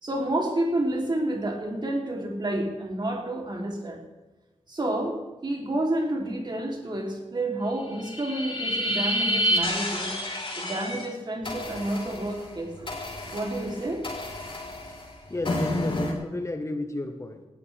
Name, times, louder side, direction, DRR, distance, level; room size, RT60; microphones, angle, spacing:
voice 1, 0.0-4.0 4.7-10.1 10.6-12.9 13.3-14.0, right 1 dB, 40° right, 1 dB, 3.1 m, -29 dB
sound 1, 7.8-11.1 11.4-16.1, left 1 dB, 50° left, 4.5 m, -30 dB
voice 2, 15.3-17.5, left 2 dB, 25° left, 6 dB, 1.2 m, -32 dB
18.0 x 13.0 x 3.4 m, 1.1 s
cardioid pair, 75°, 11 cm